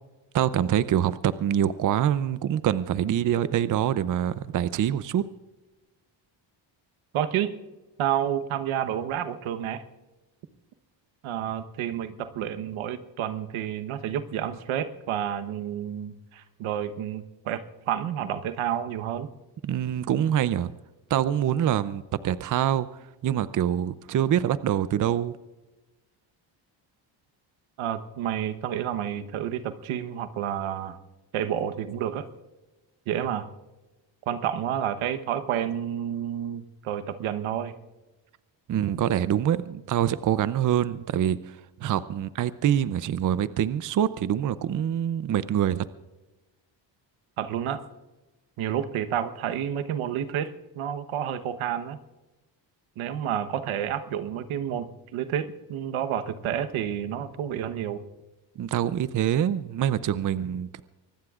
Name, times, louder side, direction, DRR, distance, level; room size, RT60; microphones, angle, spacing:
voice 1, 0.3-5.3 19.6-20.7 21.1-22.9 23.2-25.3 38.7-45.9 58.6-60.8, right 10 dB, 40° right, 15 dB, 0.6 m, -25 dB
voice 2, 7.1-7.5 8.0-9.8 11.2-19.3 27.8-31.0 31.3-32.3 33.1-33.5 34.3-37.7 47.4-47.8 48.6-52.0 53.0-58.0, right 10 dB, 85° right, 10 dB, 1.2 m, -30 dB
24.5 x 19.5 x 2.5 m, 1.1 s
cardioid pair, 115°, 47 cm